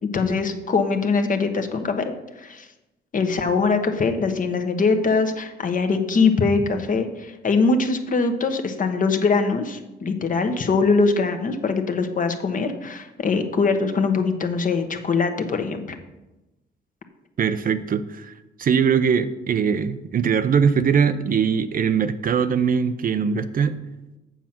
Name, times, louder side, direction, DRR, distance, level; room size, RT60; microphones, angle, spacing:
voice 1, 0.0-2.7 3.1-16.0, left 4 dB, 40° left, 6 dB, 1.1 m, -22 dB
voice 2, 17.4-18.3 18.6-23.8, right 6 dB, 45° right, 11 dB, 0.6 m, -21 dB
7.3 x 7.2 x 5.8 m, 1.0 s
cardioid pair, 90°, 20 cm